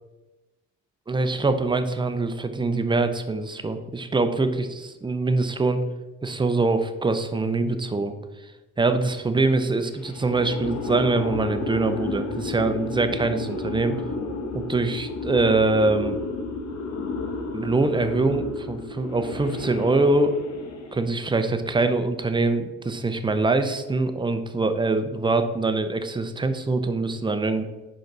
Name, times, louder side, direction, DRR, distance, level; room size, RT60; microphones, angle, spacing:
voice 1, 1.1-5.8 6.2-8.1 8.8-14.0 14.5-16.2 17.5-20.4 20.9-27.6, right 3 dB, 15° right, 8 dB, 0.6 m, -24 dB
sound 1, 10.0-21.1, left 3 dB, 60° left, 1.1 m, -32 dB
5.1 x 3.9 x 5.8 m, 1.1 s
cardioid pair, 90°, 30 cm